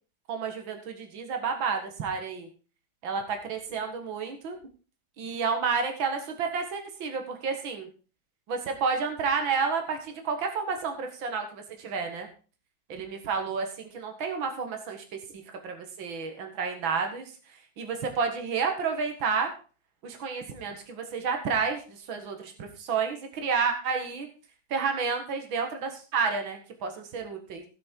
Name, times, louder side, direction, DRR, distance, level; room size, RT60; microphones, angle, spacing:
voice 1, 0.3-2.5 3.0-4.6 5.2-7.9 8.5-12.3 12.9-15.0 15.6-17.3 17.8-19.5 20.0-24.3 24.7-27.6, right 5 dB, 70° right, 4 dB, 2.5 m, -30 dB
17.0 x 6.4 x 4.6 m, 0.36 s
omnidirectional pair, 2.2 m